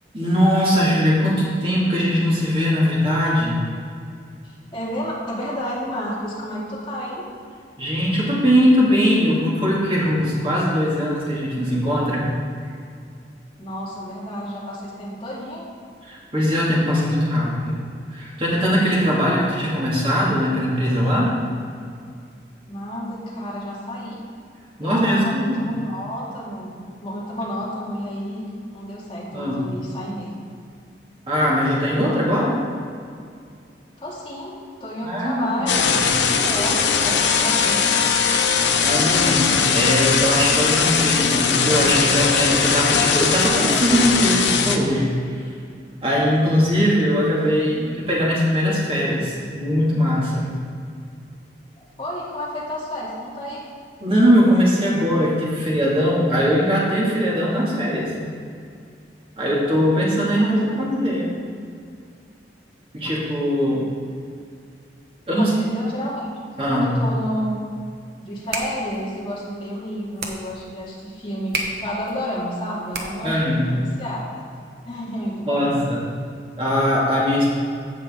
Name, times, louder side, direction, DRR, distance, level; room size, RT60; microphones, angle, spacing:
voice 1, 0.1-3.6 7.8-12.2 16.1-17.8 18.1-21.3 24.8-25.7 29.3-29.7 31.3-32.5 35.0-35.7 36.0-36.1 38.8-45.2 46.0-50.5 54.0-58.1 59.4-61.3 62.9-63.8 65.3-65.5 66.6-67.0 73.2-73.6 75.5-76.0 76.6-77.5, equal, 30° right, -6 dB, 2.4 m, -20 dB
voice 2, 4.4-7.2 13.6-15.7 22.7-24.2 24.8-26.7 27.0-30.5 34.0-34.5 34.8-35.8 36.3-38.1 52.0-53.6 60.4-60.8 64.1-64.2 65.4-66.3 66.7-67.5 68.2-73.4 73.7-74.2 74.8-75.7, equal, 30° left, -7 dB, 2.4 m, -30 dB
sound 1, 35.7-44.8, left 6 dB, 90° left, 0.8 m, -19 dB
sound 2, 68.2-73.5, right 2 dB, 65° right, 1.1 m, -33 dB
15.5 x 5.6 x 3.8 m, 2.3 s
head